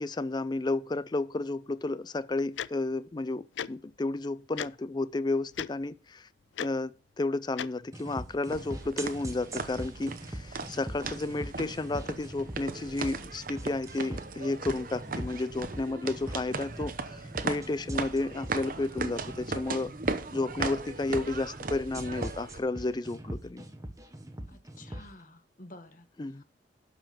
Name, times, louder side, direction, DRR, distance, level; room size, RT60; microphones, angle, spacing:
voice 1, 0.0-6.3 6.6-19.9 20.3-23.7 26.2-26.4, left 2 dB, 25° left, 0.4 m, -32 dB
Tick-tock, 2.6-2.7 3.6-3.7 4.6-4.7 5.5-5.7 6.6-6.7 7.6-7.7, left 9 dB, 90° left, 0.4 m, -34 dB
sound 1, 7.9-25.1, right 1 dB, 20° right, 1.1 m, -42 dB
sound 2, 8.5-22.6, right 4 dB, 50° right, 0.8 m, -38 dB
voice 2, 24.5-26.1 26.4-26.5, left 2 dB, 50° left, 1.2 m, -51 dB
11.5 x 5.6 x 5.5 m
head